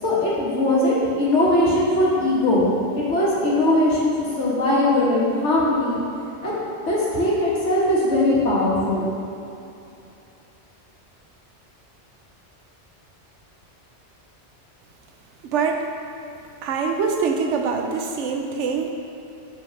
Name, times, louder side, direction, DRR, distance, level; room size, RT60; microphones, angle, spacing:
voice 1, 0.0-6.0 6.4-6.6 6.9-9.0, left 1 dB, 80° left, -7 dB, 1.9 m, -20 dB
voice 2, 15.4-15.9 16.6-18.9, right 5 dB, 80° right, 3 dB, 1.0 m, -24 dB
5.4 x 4.6 x 6.2 m, 2.8 s
omnidirectional pair, 1.2 m